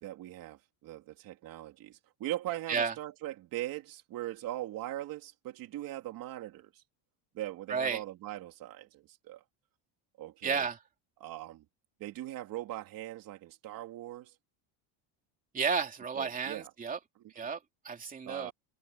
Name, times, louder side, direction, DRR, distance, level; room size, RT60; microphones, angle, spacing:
voice 1, 0.0-6.8 7.3-9.4 10.2-10.7 11.2-11.7 12.0-14.3 16.1-16.7 17.2-17.3 18.2-18.5, right 14 dB, 40° right, 3.8 m, -40 dB
voice 2, 7.7-8.0 10.4-10.8 15.5-17.0 17.4-17.6 17.8-18.5, right 5 dB, 15° right, 3.3 m, -32 dB
cardioid pair, 180°, 49 cm